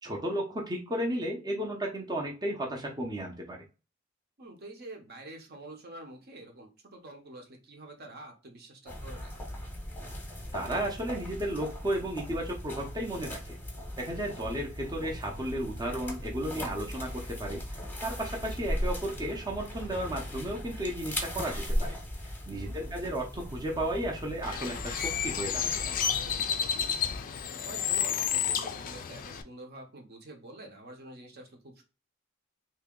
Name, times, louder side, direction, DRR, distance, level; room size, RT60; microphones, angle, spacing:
voice 1, 0.0-3.6 10.5-13.6 14.0-22.0 22.5-26.0, right 1 dB, 20° right, 0 dB, 0.6 m, -34 dB
voice 2, 4.4-9.3 22.6-23.0 26.7-31.8, right 1 dB, 50° right, 3 dB, 0.8 m, -47 dB
sound 1, 8.9-26.4, equal, 10° left, 0.8 m, -38 dB
Bird, 24.4-29.4, left 8 dB, 45° left, 0.3 m, -31 dB
2.9 x 2.7 x 3.6 m, 0.33 s
head